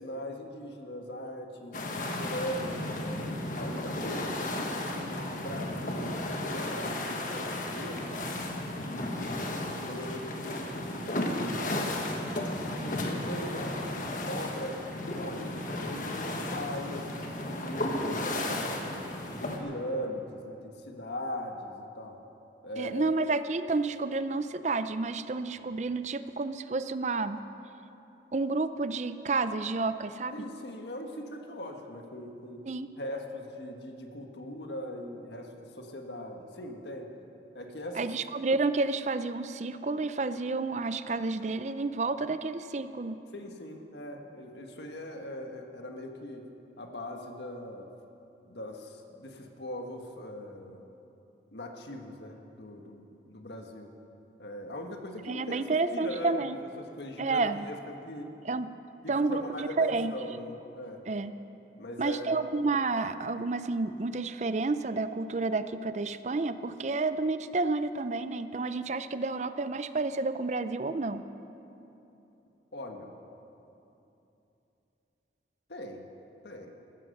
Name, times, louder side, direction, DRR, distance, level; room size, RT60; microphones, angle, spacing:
voice 1, 0.0-1.8 2.1-3.2 3.6-8.1 8.6-9.4 9.8-12.2 12.7-13.8 14.2-17.1 17.4-19.0 19.3-22.2 22.6-23.1 30.3-32.7 33.0-37.1 37.5-38.1 43.3-46.5 46.8-47.9 48.4-50.8 51.5-53.9 54.4-58.3 59.0-61.0 61.8-62.4 72.7-73.1 75.7-76.1 76.4-76.7, left 1 dB, 75° left, 3 dB, 1.5 m, -40 dB
sound 1, 1.7-19.6, left 1 dB, 50° left, 1.5 m, -34 dB
voice 2, 22.8-27.4 28.3-30.3 32.7-32.9 37.9-43.2 55.3-56.6 57.2-57.6 58.4-58.7 59.1-60.1 61.1-61.3 62.0-71.2, right 3 dB, 40° right, 12 dB, 0.5 m, -30 dB
14.5 x 13.5 x 6.6 m, 2.9 s
head